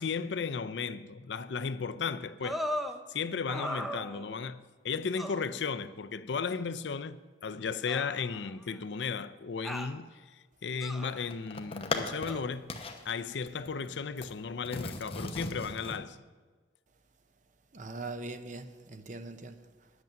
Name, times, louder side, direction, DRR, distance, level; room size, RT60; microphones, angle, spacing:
voice 1, 0.0-2.6 3.1-12.7 13.0-16.2, left 5 dB, 70° left, 0.5 m, -35 dB
sound 1, 2.4-3.0 3.5-4.5 5.2-5.4 6.5-6.6 7.9-8.8 9.6-10.0 10.8-11.3 12.3-12.4, equal, ahead, 0.6 m, -37 dB
sound 2, 10.8-12.4 12.7-13.1 13.5-14.3 14.6-16.0, left 3 dB, 30° left, 1.0 m, -37 dB
voice 2, 17.7-19.9, right 2 dB, 45° right, 0.7 m, -42 dB
10.5 x 8.2 x 7.4 m
head